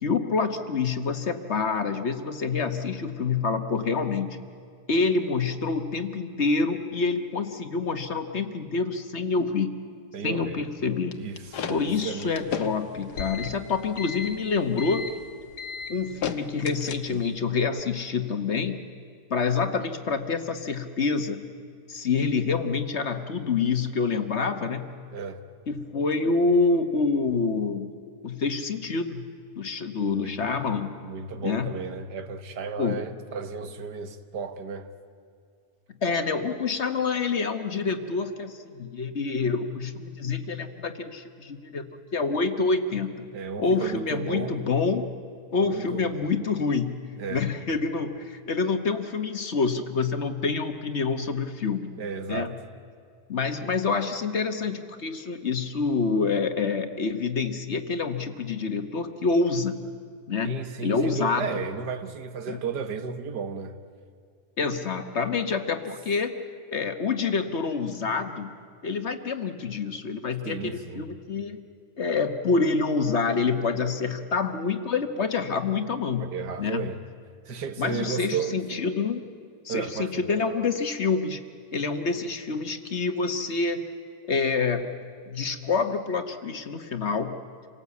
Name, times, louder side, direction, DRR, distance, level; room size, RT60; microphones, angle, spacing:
voice 1, 0.0-4.4 4.9-9.7 10.2-11.2 11.7-15.1 15.9-18.8 19.3-21.4 21.9-24.9 25.7-27.9 28.2-29.3 29.6-31.0 31.4-31.7 32.8-33.0 36.0-41.9 42.1-43.1 43.6-45.1 45.5-51.9 52.3-52.6 53.3-59.8 60.3-61.6 62.5-62.6 64.6-66.3 66.7-68.5 68.8-71.6 72.0-76.9 77.8-79.2 79.6-81.4 81.7-83.9 84.3-85.0 85.3-87.4, left 4 dB, 45° left, 1.3 m, -27 dB
voice 2, 10.1-10.6 11.1-12.6 25.1-25.4 30.0-30.3 31.0-34.9 43.3-44.6 45.5-46.2 47.2-47.5 52.0-52.6 60.4-63.8 70.4-71.1 76.2-77.0 77.5-78.5 79.7-80.2, right 6 dB, 85° right, 1.8 m, -34 dB
sound 1, 11.1-17.4, left 6 dB, 80° left, 1.7 m, -35 dB
27.5 x 18.5 x 8.3 m
omnidirectional pair, 1.7 m